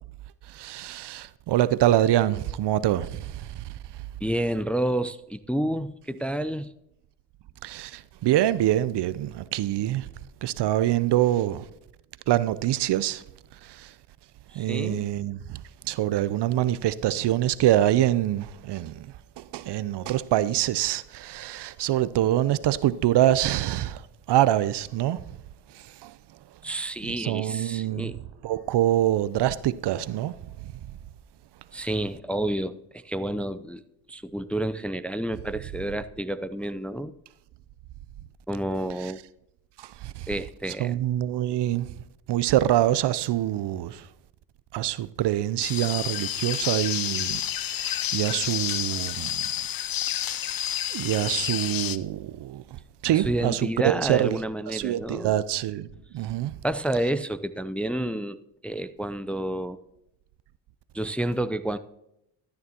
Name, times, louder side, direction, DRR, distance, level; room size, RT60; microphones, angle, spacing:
voice 1, 0.5-3.6 7.6-10.1 10.4-11.7 12.3-13.2 13.6-13.9 14.5-19.1 19.4-24.0 24.3-25.3 25.7-26.2 27.0-28.1 28.4-30.3 30.6-30.7 39.0-39.1 39.8-40.3 40.8-42.0 42.3-44.1 44.7-49.5 50.2-50.5 50.9-54.4 54.7-55.9 56.1-56.5, right 13 dB, 60° right, 0.6 m, -25 dB
voice 2, 4.2-6.7 14.5-15.1 26.6-28.2 31.7-33.8 34.1-37.1 38.5-39.2 40.3-41.0 53.1-55.4 56.6-58.4 58.6-59.8 60.9-61.8, right 1 dB, 5° left, 0.5 m, -29 dB
sound 1, 45.6-52.0, left 11 dB, 45° left, 0.7 m, -29 dB
14.0 x 9.5 x 2.9 m
hypercardioid pair, 50°, 48 cm